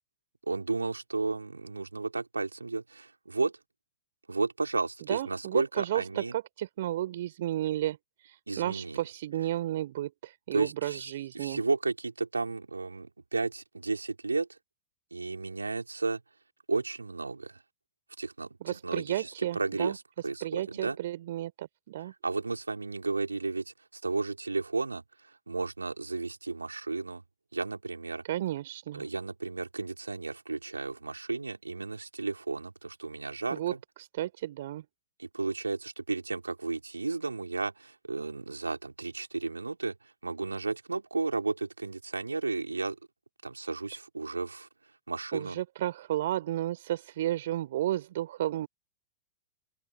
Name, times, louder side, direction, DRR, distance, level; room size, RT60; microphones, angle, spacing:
voice 1, 0.5-3.5 4.3-6.3 8.5-9.0 10.5-14.5 15.1-16.2 16.7-17.5 18.2-21.0 22.2-25.0 25.5-27.2 27.5-28.2 28.9-33.6 35.2-39.9 40.2-43.0 43.4-44.7 45.1-45.6, right 3 dB, 80° right, 4.0 m, -33 dB
voice 2, 5.1-8.0 8.2-11.6 18.6-20.0 20.4-22.1 28.3-29.0 33.5-33.7 34.0-34.8 45.3-48.7, right 13 dB, 55° right, 5.1 m, -33 dB
open air
figure-of-eight pair, 100°, 0 cm